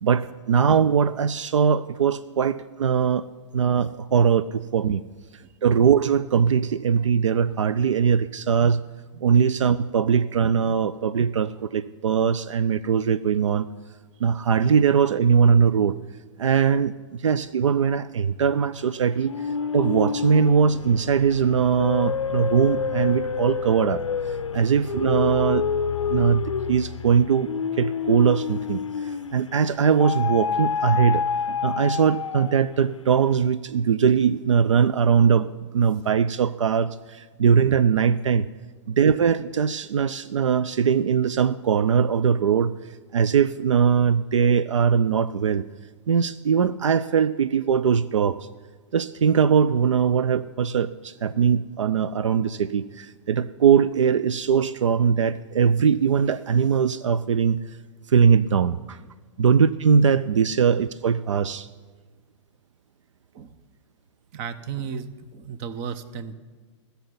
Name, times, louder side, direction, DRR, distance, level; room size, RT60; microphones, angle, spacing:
voice 1, 0.0-3.2 3.5-5.0 5.6-8.8 9.2-13.7 14.2-16.0 16.4-19.3 19.7-24.0 24.5-25.7 26.1-27.5 27.8-28.8 29.3-35.5 35.7-38.5 38.9-42.7 43.1-45.6 46.1-48.5 48.9-57.6 58.1-59.0 59.4-61.7, right 7 dB, 80° right, 15 dB, 0.4 m, -21 dB
sound 1, 19.3-29.5 30.0-32.7, left 6 dB, 85° left, 0.5 m, -28 dB
voice 2, 64.3-66.3, right 7 dB, 40° right, 15 dB, 0.9 m, -34 dB
14.0 x 7.0 x 9.3 m, 1.4 s
figure-of-eight pair, 105°, 16 cm